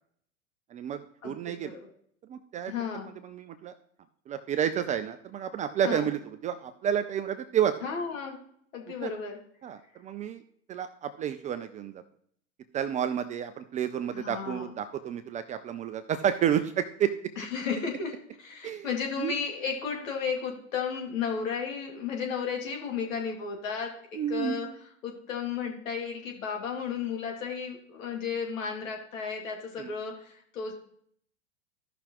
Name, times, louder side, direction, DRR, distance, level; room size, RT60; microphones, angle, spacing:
voice 1, 0.7-1.8 2.3-2.7 3.2-3.7 4.3-7.9 9.0-9.1 9.6-10.4 10.7-12.0 12.7-17.1 18.6-18.9 19.2-19.3 24.1-24.7 29.8-29.9, right 9 dB, 20° right, 10 dB, 0.3 m, -30 dB
voice 2, 1.2-1.9 2.7-3.1 5.8-6.1 7.8-8.4 8.7-9.4 14.1-14.7 17.4-24.7 25.0-30.7, left 6 dB, 75° left, 1 dB, 2.2 m, -34 dB
14.0 x 5.9 x 2.9 m, 0.65 s
hypercardioid pair, 95°, 40 cm